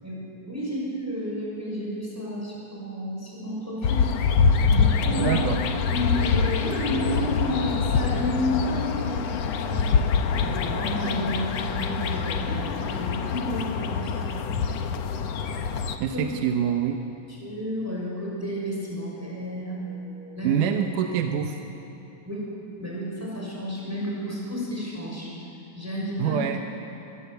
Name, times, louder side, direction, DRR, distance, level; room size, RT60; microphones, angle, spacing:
voice 1, 0.4-5.5 5.8-9.9 10.4-14.5 16.1-16.3 17.4-20.6 22.3-22.5 22.8-25.3 25.7-26.4, left 1 dB, 5° right, -4 dB, 5.9 m, -31 dB
sound 1, 3.8-16.0, left 5 dB, 65° left, 1.8 m, -25 dB
voice 2, 5.2-5.6 16.0-17.0 20.4-21.6 26.2-26.6, right 9 dB, 70° right, 4 dB, 2.3 m, -25 dB
25.0 x 20.0 x 8.1 m, 3.0 s
omnidirectional pair, 4.0 m